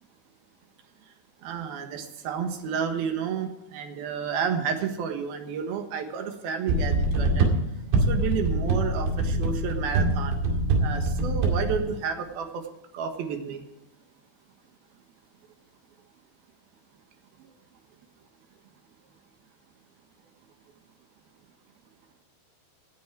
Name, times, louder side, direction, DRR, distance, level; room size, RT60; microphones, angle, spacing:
voice 1, 1.4-7.5 8.0-10.4 10.8-12.6 12.9-13.6, right 6 dB, 65° right, 6 dB, 3.0 m, -31 dB
sound 1, 6.7-11.8, right 2 dB, 90° right, 4.6 m, -24 dB
18.0 x 9.4 x 4.7 m, 0.96 s
omnidirectional pair, 5.1 m